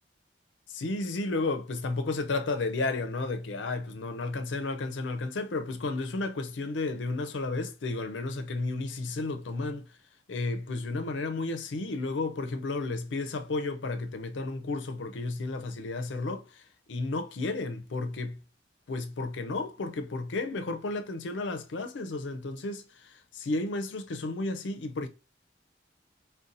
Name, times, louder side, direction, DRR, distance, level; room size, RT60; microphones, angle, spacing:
voice 1, 0.7-9.9 10.3-16.6 16.9-18.4 18.9-25.1, left 3 dB, 90° left, 0.5 m, -32 dB
3.9 x 2.2 x 2.5 m
head